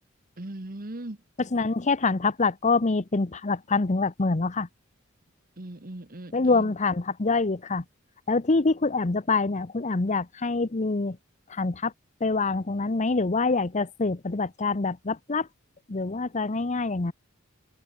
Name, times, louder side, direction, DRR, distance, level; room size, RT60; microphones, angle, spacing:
voice 1, 0.4-1.2 5.6-6.7, right 1 dB, 45° right, 1.6 m, -39 dB
voice 2, 1.4-4.7 6.3-7.8 8.3-11.2 11.5-11.9 12.2-15.5 15.9-17.1, left 3 dB, 35° left, 0.8 m, -25 dB
head